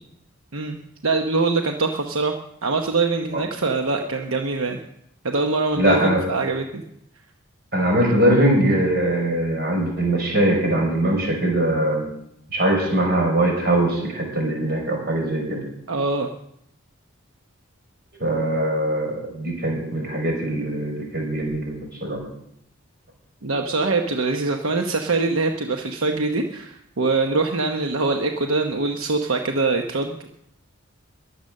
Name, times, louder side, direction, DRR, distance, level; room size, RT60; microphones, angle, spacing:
voice 1, 1.0-2.3 2.6-4.8 5.2-6.8 15.9-16.3 23.4-30.3, right 3 dB, 80° right, 4 dB, 1.0 m, -23 dB
voice 2, 5.8-6.2 7.7-12.1 12.5-15.6 18.2-22.2, right 1 dB, 50° right, 2 dB, 5.4 m, -21 dB
21.5 x 8.0 x 6.5 m, 0.76 s
head